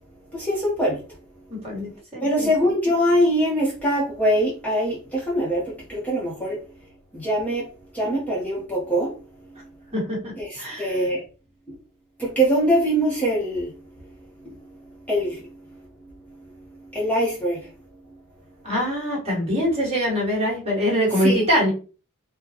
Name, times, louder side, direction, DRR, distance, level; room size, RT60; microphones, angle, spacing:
voice 1, 0.3-1.0 2.2-6.6 7.1-7.6 7.9-9.1 10.4-11.2 12.2-13.7 15.1-15.4 16.9-17.6 21.1-21.4, equal, 5° left, -5 dB, 0.9 m, -23 dB
voice 2, 1.6-2.5 9.9-10.3 10.6-10.9 18.6-21.7, equal, 30° right, -4 dB, 1.7 m, -23 dB
4.2 x 2.2 x 2.9 m, 0.36 s
head